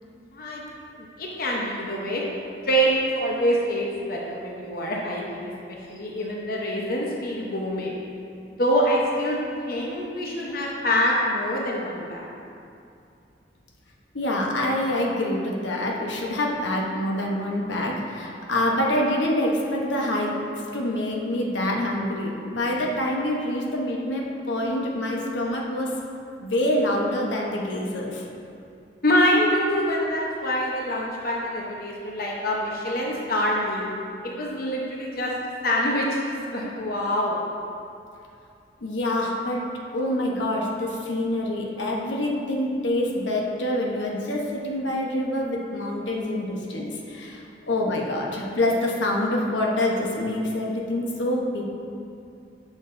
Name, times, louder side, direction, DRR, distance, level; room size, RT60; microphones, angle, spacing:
voice 1, 0.3-0.6 1.0-2.3 2.6-7.9 8.6-9.4 9.7-12.3 29.0-33.9 34.2-35.3 35.6-37.4, equal, 55° left, -2 dB, 0.9 m, -25 dB
voice 2, 14.1-20.3 20.7-25.9 26.4-28.2 38.8-39.6 39.9-47.4 47.7-51.6, left 1 dB, 90° left, -1 dB, 1.0 m, -26 dB
10.5 x 6.2 x 2.6 m, 2.5 s
head